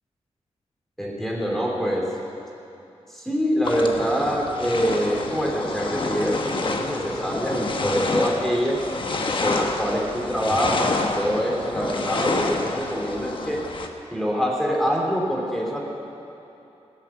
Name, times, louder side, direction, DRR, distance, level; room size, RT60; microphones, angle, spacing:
voice 1, 1.0-2.1 3.1-8.8 9.4-13.6 14.1-15.8, equal, 5° left, -3 dB, 2.9 m, -25 dB
sound 1, 3.6-13.9, left 3 dB, 50° left, 1.1 m, -28 dB
18.0 x 7.5 x 8.4 m, 2.9 s
wide cardioid pair, 130°, 11 cm